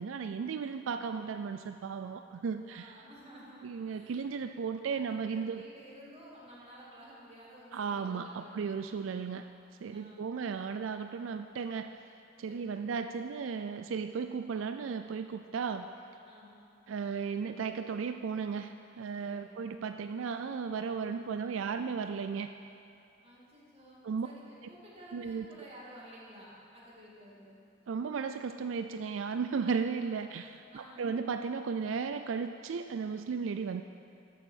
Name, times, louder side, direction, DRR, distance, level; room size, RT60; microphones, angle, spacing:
voice 1, 0.0-2.9 3.6-5.6 7.7-9.5 9.8-11.9 12.4-15.9 16.9-22.5 24.0-24.3 25.1-25.5 27.9-33.8, right 5 dB, 85° right, 8 dB, 0.4 m, -35 dB
voice 2, 0.8-1.1 2.6-4.3 4.6-9.2 9.9-10.3 12.5-12.8 16.3-16.6 19.2-19.6 23.2-27.6 30.7-31.1, equal, 30° right, -5 dB, 2.6 m, -53 dB
13.5 x 6.9 x 6.4 m, 2.6 s
head